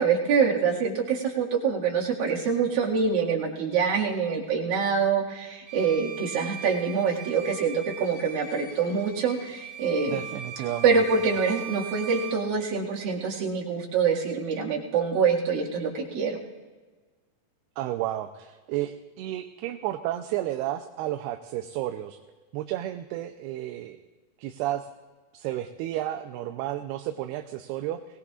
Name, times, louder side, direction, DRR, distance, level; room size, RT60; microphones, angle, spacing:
voice 1, 0.0-10.2 10.8-16.4, right 5 dB, 60° right, -4 dB, 3.6 m, -25 dB
Bowed string instrument, 5.7-12.5, right 6 dB, 40° right, 3.2 m, -40 dB
voice 2, 10.1-10.9 17.8-22.2 22.5-24.0 24.4-24.9 25.3-28.0, right 13 dB, 80° right, 6 dB, 2.5 m, -32 dB
22.5 x 18.5 x 2.5 m, 1.3 s
omnidirectional pair, 4.8 m